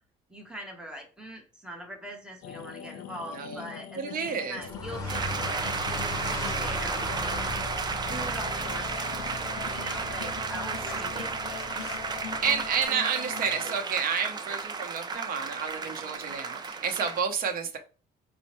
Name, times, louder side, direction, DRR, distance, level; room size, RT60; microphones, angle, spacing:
voice 1, 0.3-4.0 4.2-7.4 8.1-11.9, equal, 5° right, 1 dB, 1.0 m, -42 dB
sound 1, 2.4-13.8, left 9 dB, 80° left, 0.4 m, -43 dB
voice 2, 3.3-3.6 4.0-4.6 5.0-5.1 12.4-17.8, right 6 dB, 60° right, 5 dB, 0.7 m, -30 dB
Car, 4.6-12.8, left 1 dB, 20° left, 0.9 m, -38 dB
sound 2, 5.1-17.2, right 4 dB, 25° right, 0.4 m, -33 dB
5.2 x 2.1 x 3.0 m, 0.36 s
cardioid pair, 110°, 17 cm